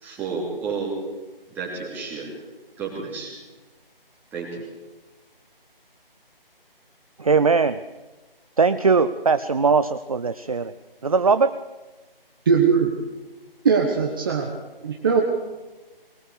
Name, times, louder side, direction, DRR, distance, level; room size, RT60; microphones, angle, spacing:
voice 1, 0.0-1.0 1.5-2.3 2.8-3.3 4.3-4.6, right 4 dB, 5° right, -3 dB, 3.1 m, -31 dB
voice 2, 7.2-7.8 8.6-10.7 11.0-11.5, right 4 dB, 40° right, 12 dB, 0.6 m, -20 dB
voice 3, 12.4-12.9 13.6-14.5 14.8-15.2, right 6 dB, 25° right, 2 dB, 1.4 m, -20 dB
22.0 x 19.0 x 6.9 m, 1.2 s
figure-of-eight pair, 160°, 29 cm